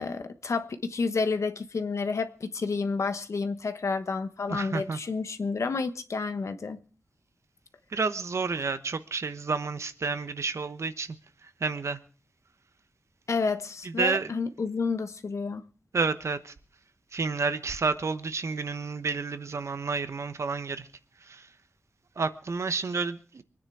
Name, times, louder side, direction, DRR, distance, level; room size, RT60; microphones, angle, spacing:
voice 1, 0.0-6.8 13.3-15.6, left 4 dB, 75° left, 1.2 m, -30 dB
voice 2, 4.5-5.0 7.9-11.2 11.4-12.0 13.8-14.3 15.9-16.5 17.1-20.9 21.2-21.5 22.2-23.4, right 4 dB, 70° right, 1.1 m, -30 dB
24.0 x 9.7 x 4.7 m
wide cardioid pair, 75°, 5 cm